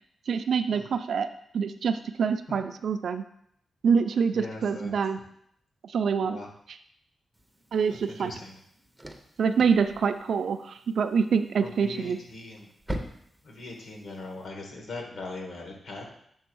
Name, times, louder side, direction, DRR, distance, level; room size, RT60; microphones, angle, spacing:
voice 1, 0.3-1.3 1.5-3.2 3.8-5.2 5.8-6.4 7.7-8.3 9.4-12.2, right 6 dB, 65° right, 8 dB, 0.5 m, -26 dB
voice 2, 4.3-4.9 6.2-6.5 7.9-8.6 11.6-12.7 13.4-16.1, left 2 dB, 65° left, 0 dB, 1.6 m, -40 dB
sound 1, 7.3-14.5, right 1 dB, 5° right, 0.5 m, -44 dB
7.2 x 3.3 x 6.2 m, 0.70 s
wide cardioid pair, 175°, 0 cm